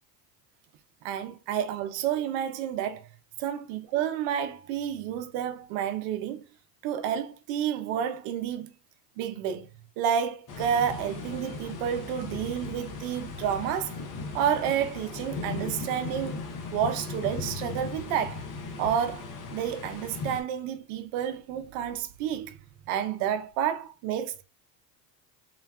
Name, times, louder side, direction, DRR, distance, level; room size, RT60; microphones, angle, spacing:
voice 1, 1.0-3.1 3.4-6.4 6.8-8.7 9.2-9.7 10.0-14.0 14.3-16.4 16.7-18.4 18.8-22.6 22.9-24.4, right 9 dB, 80° right, 0.7 m, -30 dB
sound 1, 10.5-20.4, left 3 dB, 40° left, 0.8 m, -37 dB
3.8 x 2.2 x 2.2 m
supercardioid pair, 100°, 49 cm